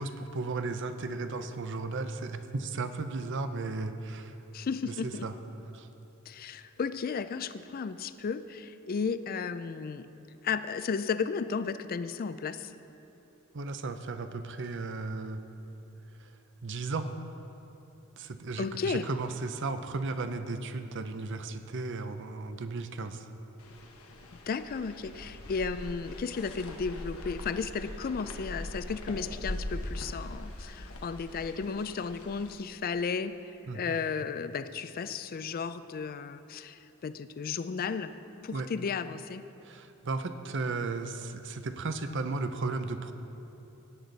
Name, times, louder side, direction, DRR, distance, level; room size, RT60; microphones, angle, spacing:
voice 1, 0.0-4.4 4.9-5.3 5.7-5.9 13.5-15.4 16.2-16.3 16.6-17.1 18.2-23.3 33.7-34.0 38.5-38.7 39.6-43.1, right 3 dB, 55° right, 9 dB, 0.7 m, -35 dB
voice 2, 4.5-5.3 6.3-10.1 10.4-12.7 18.6-19.1 24.5-38.1 38.4-39.4, left 5 dB, 40° left, 12 dB, 0.4 m, -34 dB
sound 1, 23.6-32.5, left 1 dB, 75° left, 1.2 m, -41 dB
16.5 x 9.7 x 4.0 m, 2.9 s
head